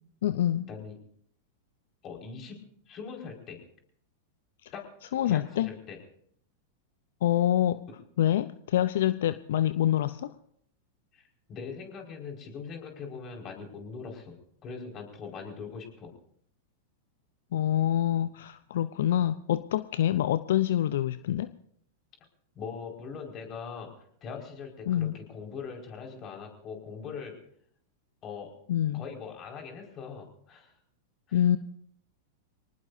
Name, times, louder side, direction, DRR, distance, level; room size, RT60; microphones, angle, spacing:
voice 1, 0.2-0.7 5.1-5.7 7.2-7.8 8.2-10.3 17.5-21.5 24.9-25.1 28.7-29.0 31.3-31.6, left 11 dB, 70° left, 14 dB, 0.6 m, -26 dB
voice 2, 2.0-2.6 2.9-3.6 4.7-4.8 5.2-6.0 11.1-11.2 11.5-16.1 22.5-23.9 24.2-27.3 28.2-28.5 28.9-30.7 31.3-31.4, left 5 dB, 35° left, 2 dB, 5.1 m, -41 dB
26.0 x 19.0 x 2.7 m, 0.66 s
hypercardioid pair, 100°, 0 cm